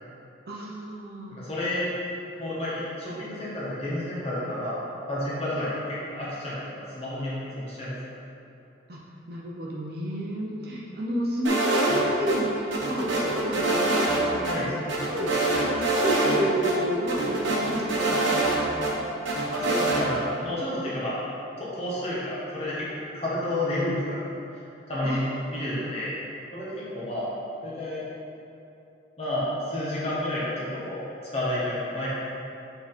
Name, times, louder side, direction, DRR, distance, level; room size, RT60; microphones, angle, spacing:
voice 1, 0.5-1.4 8.9-9.0 9.3-19.0 25.0-25.3, equal, 55° right, -3 dB, 0.8 m, -31 dB
voice 2, 1.3-1.9 2.4-4.8 5.1-8.0 14.5-14.7 19.5-21.1 21.6-24.2 24.9-25.2 25.5-26.1 26.5-27.3 27.6-28.0 29.2-32.1, left 1 dB, 30° left, -9 dB, 1.3 m, -30 dB
sound 1, 11.4-12.4 12.7-14.2 14.4-14.5 14.9-16.4 16.6-16.7 17.1-18.9 19.2-20.0, right 2 dB, 85° right, 1.2 m, -25 dB
7.2 x 4.0 x 4.3 m, 2.8 s
head